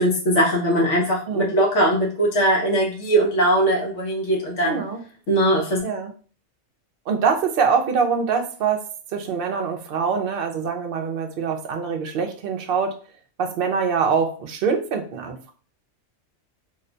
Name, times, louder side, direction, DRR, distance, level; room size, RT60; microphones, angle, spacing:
voice 1, 0.0-4.8 5.3-5.8, right 1 dB, 65° left, -1 dB, 1.2 m, -20 dB
voice 2, 4.6-5.0 5.8-6.1 7.1-8.8 9.1-13.0 13.4-15.5, right 6 dB, 60° right, 4 dB, 0.6 m, -24 dB
2.9 x 2.2 x 3.8 m, 0.40 s
omnidirectional pair, 1.4 m